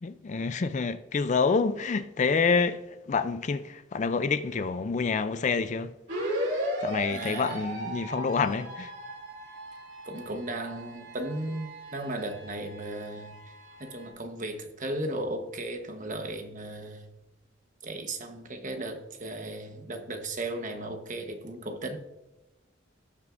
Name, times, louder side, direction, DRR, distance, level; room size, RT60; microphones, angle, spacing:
voice 1, 0.0-5.9 6.3-6.4 6.8-8.9, left 4 dB, 40° left, 0.4 m, -27 dB
sound 1, 6.1-14.1, equal, 65° right, 2.7 m, -37 dB
voice 2, 7.1-7.6 10.0-13.3 13.8-17.1 17.8-22.0, right 1 dB, 40° right, 1.1 m, -36 dB
18.0 x 6.1 x 2.5 m
head